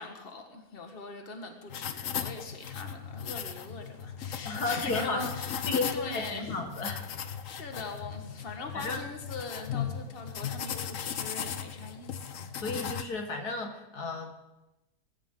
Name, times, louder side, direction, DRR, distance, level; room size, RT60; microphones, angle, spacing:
voice 1, 0.0-5.6 5.9-6.7 7.4-12.5, left 3 dB, 35° left, 4 dB, 1.8 m, -41 dB
sound 1, 1.7-13.0, left 8 dB, 60° left, 1.2 m, -37 dB
voice 2, 4.4-5.2 5.7-7.0 8.7-9.0 12.6-14.3, left 3 dB, 80° left, 3 dB, 2.4 m, -33 dB
23.0 x 15.0 x 3.9 m, 0.99 s
omnidirectional pair, 1.6 m